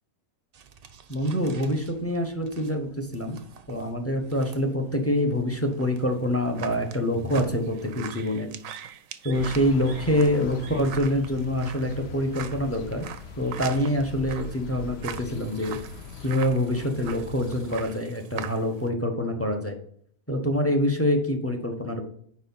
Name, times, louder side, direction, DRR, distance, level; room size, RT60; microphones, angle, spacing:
sound 1, 0.5-8.2, right 5 dB, 65° right, 0.4 m, -44 dB
voice 1, 1.1-3.4 3.7-8.5 9.2-13.1 13.4-15.8 16.2-19.8 20.3-22.0, left 1 dB, 15° left, 4 dB, 0.6 m, -26 dB
sound 2, 5.7-18.9, right 9 dB, 85° right, 1.0 m, -42 dB
sound 3, 9.3-17.9, left 4 dB, 60° left, 0.8 m, -41 dB
5.1 x 4.2 x 5.3 m, 0.62 s
omnidirectional pair, 1.4 m